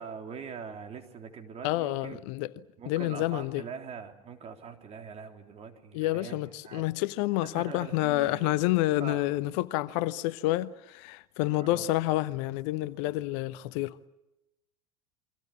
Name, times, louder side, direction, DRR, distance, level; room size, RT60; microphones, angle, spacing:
voice 1, 0.0-2.2 2.8-6.9 7.4-8.7 9.0-9.3 11.5-11.9, right 6 dB, 35° right, 3.8 m, -43 dB
voice 2, 1.6-2.5 2.9-3.6 5.9-14.0, left 17 dB, 55° left, 0.9 m, -29 dB
29.0 x 23.5 x 7.5 m
figure-of-eight pair, 80°, 19 cm